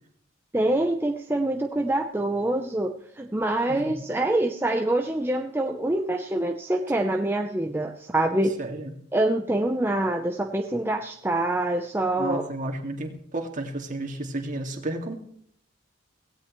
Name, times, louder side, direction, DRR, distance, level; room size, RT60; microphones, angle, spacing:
voice 1, 0.5-2.9 3.2-8.6 9.1-12.4, right 1 dB, 10° right, 3 dB, 0.7 m, -25 dB
voice 2, 8.6-8.9 12.2-15.1, right 2 dB, 45° right, 3 dB, 2.2 m, -32 dB
17.0 x 16.5 x 3.2 m, 0.65 s
head